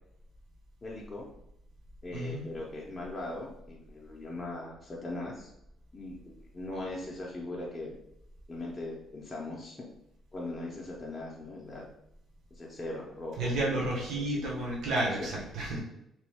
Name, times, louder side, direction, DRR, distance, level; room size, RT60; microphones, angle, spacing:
voice 1, 0.8-1.3 2.0-5.5 5.9-8.0 8.5-9.8 10.3-11.9 12.5-13.5 15.2-15.3, left 2 dB, 20° left, -4 dB, 0.5 m, -39 dB
voice 2, 2.1-2.5 13.4-15.8, right 1 dB, 70° right, -3 dB, 0.9 m, -31 dB
3.0 x 2.2 x 3.4 m, 0.81 s
cardioid pair, 130°, 0 cm